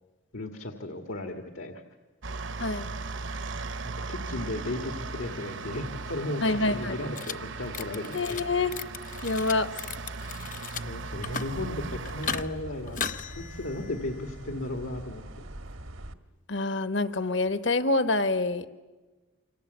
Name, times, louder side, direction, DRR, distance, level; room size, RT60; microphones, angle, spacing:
voice 1, 0.3-1.8 4.1-8.5 10.7-13.1 13.4-15.5, left 1 dB, 85° left, 4 dB, 2.0 m, -35 dB
sound 1, 2.2-12.4, right 3 dB, 70° right, 0.9 m, -38 dB
voice 2, 6.4-6.9 8.1-8.7 9.2-9.7 16.5-18.7, left 3 dB, 65° left, 11 dB, 1.2 m, -26 dB
sound 2, 7.2-7.3 7.6-8.4 8.7-10.8 11.1-11.6 12.1-12.4 12.9-14.3, left 6 dB, 40° left, 0.8 m, -37 dB
sound 3, 11.1-16.1, right 1 dB, 90° right, 1.5 m, -43 dB
28.5 x 25.5 x 8.1 m, 1.2 s
head